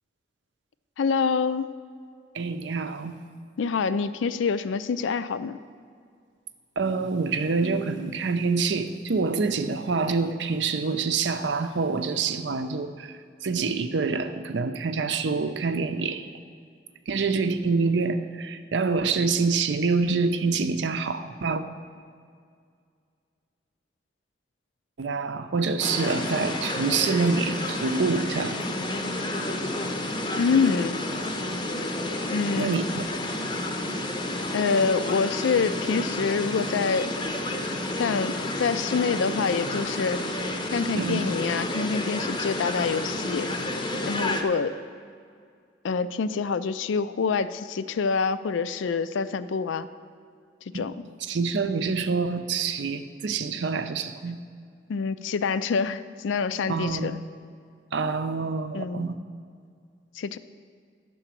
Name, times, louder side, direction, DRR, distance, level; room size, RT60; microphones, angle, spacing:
voice 1, 1.0-1.7 3.6-5.6 30.3-31.0 32.3-32.8 34.5-37.1 38.0-40.2 40.7-43.5 44.0-44.7 45.8-49.9 50.7-50.9 54.9-57.2 58.7-59.1 60.2-60.4, left 5 dB, 80° left, 14 dB, 0.4 m, -26 dB
voice 2, 2.3-3.2 6.8-16.3 17.1-21.6 25.0-28.8 32.6-33.0 40.9-41.3 50.7-50.9 51.2-54.4 56.7-57.2 57.9-59.2, right 4 dB, 70° right, 9 dB, 0.5 m, -26 dB
sound 1, 25.8-44.4, left 1 dB, 25° left, 0.6 m, -30 dB
11.5 x 3.9 x 7.4 m, 2.2 s
head